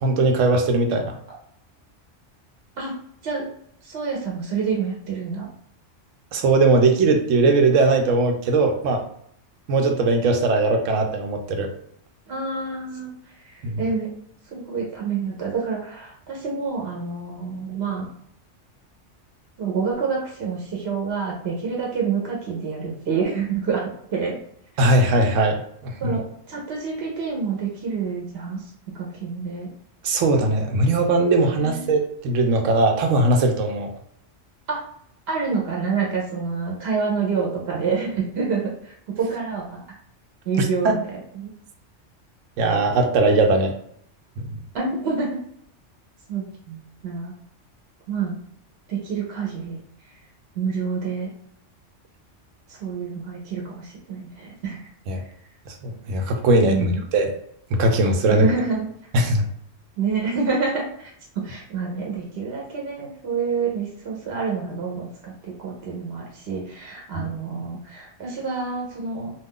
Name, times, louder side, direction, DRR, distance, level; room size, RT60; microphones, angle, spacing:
voice 1, 0.0-1.1 6.3-9.0 9.7-11.7 13.6-13.8 24.8-26.2 30.0-33.9 40.6-40.9 42.6-43.7 44.5-44.6 55.1-55.2 55.7-57.3 57.7-58.5 59.1-59.5 67.1-67.3, right 2 dB, 85° right, 4 dB, 0.9 m, -20 dB
voice 2, 3.8-5.5 12.3-13.1 13.4-14.1 14.5-18.1 19.6-24.4 26.0-29.7 31.6-32.0 34.7-34.8 35.3-39.8 40.5-41.5 44.7-45.4 46.3-47.3 48.1-48.3 48.9-49.8 50.5-51.3 52.7-54.9 56.7-57.0 58.3-58.9 60.0-69.3, right 5 dB, 60° right, -2 dB, 0.9 m, -28 dB
2.4 x 2.3 x 3.5 m, 0.67 s
omnidirectional pair, 1.3 m